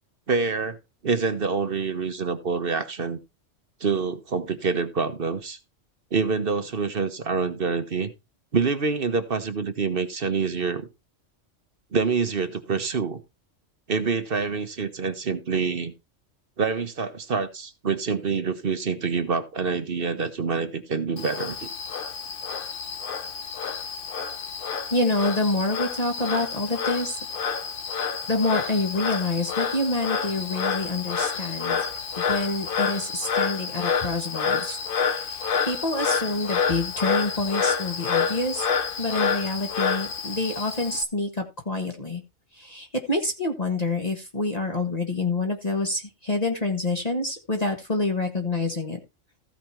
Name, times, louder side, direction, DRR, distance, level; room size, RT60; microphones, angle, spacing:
voice 1, 0.3-0.8 1.0-3.2 3.8-5.6 6.1-8.1 8.5-10.9 11.9-13.2 13.9-15.9 16.6-21.7, right 5 dB, 50° right, 1.3 m, -26 dB
Frog, 21.2-41.0, left 6 dB, 50° left, 1.0 m, -28 dB
voice 2, 24.9-27.2 28.3-31.8 32.2-38.6 39.0-42.2 42.5-49.0, left 2 dB, 35° left, 1.6 m, -27 dB
15.0 x 5.1 x 4.5 m
omnidirectional pair, 1.3 m